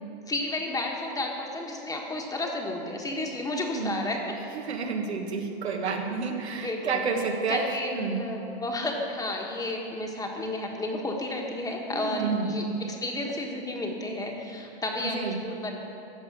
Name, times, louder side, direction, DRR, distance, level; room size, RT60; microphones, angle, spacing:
voice 1, 0.3-4.4 6.5-7.1 7.5-15.8, left 2 dB, 10° left, 1 dB, 1.4 m, -32 dB
voice 2, 4.5-7.7 7.9-8.2 11.9-12.5 15.1-15.4, right 5 dB, 85° right, 3 dB, 1.6 m, -29 dB
13.5 x 5.3 x 8.5 m, 2.8 s
hypercardioid pair, 115°, 32 cm